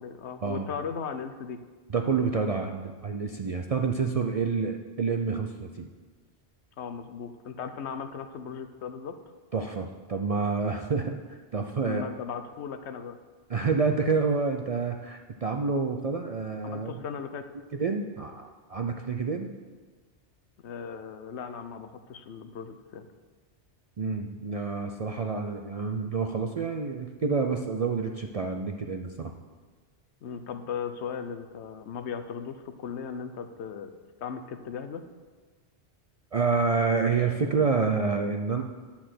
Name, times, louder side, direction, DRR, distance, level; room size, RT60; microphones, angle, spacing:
voice 1, 0.0-1.6 6.8-9.2 11.8-13.2 16.6-17.5 20.6-23.1 30.2-33.9 34.2-35.0, left 6 dB, 75° left, 9 dB, 1.0 m, -37 dB
voice 2, 1.9-5.9 9.5-12.0 13.5-17.0 17.8-19.5 24.0-29.3 36.3-38.6, right 4 dB, 50° right, 4 dB, 0.4 m, -28 dB
10.0 x 4.4 x 7.6 m, 1.4 s
omnidirectional pair, 1.2 m